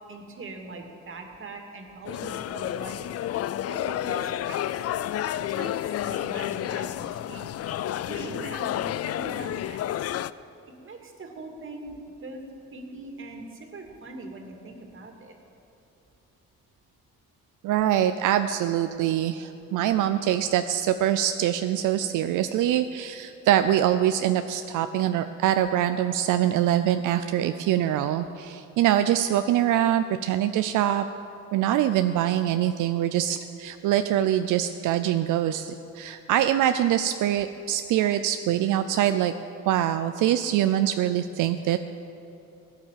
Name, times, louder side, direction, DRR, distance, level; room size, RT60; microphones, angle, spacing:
voice 1, 0.1-3.4 3.7-4.7 5.3-5.8 6.0-7.5 8.0-10.0 10.8-11.9 12.2-12.4 12.7-15.3, right 2 dB, 45° right, 3 dB, 2.3 m, -41 dB
sound 1, 2.0-10.3, left 12 dB, 55° left, 0.4 m, -30 dB
voice 2, 17.6-31.0 31.5-39.3 39.7-41.8, right 11 dB, 85° right, 9 dB, 0.5 m, -24 dB
16.5 x 9.7 x 7.5 m, 2.8 s
cardioid pair, 90°, 30 cm